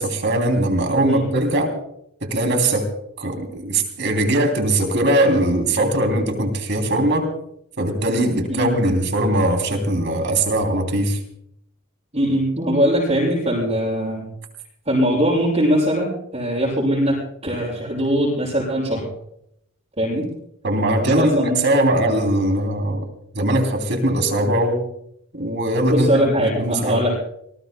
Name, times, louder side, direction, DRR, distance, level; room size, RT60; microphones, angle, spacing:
voice 1, 0.0-1.7 2.2-2.9 3.2-7.3 7.8-11.2 20.6-23.0 23.3-24.9 25.3-27.0, right 1 dB, 55° right, 5 dB, 3.0 m, -20 dB
voice 2, 12.1-14.3 14.9-17.2 17.4-19.1 20.0-20.3 21.0-21.6 25.8-27.1, equal, 30° right, -7 dB, 6.2 m, -21 dB
27.0 x 20.0 x 2.2 m, 0.73 s
head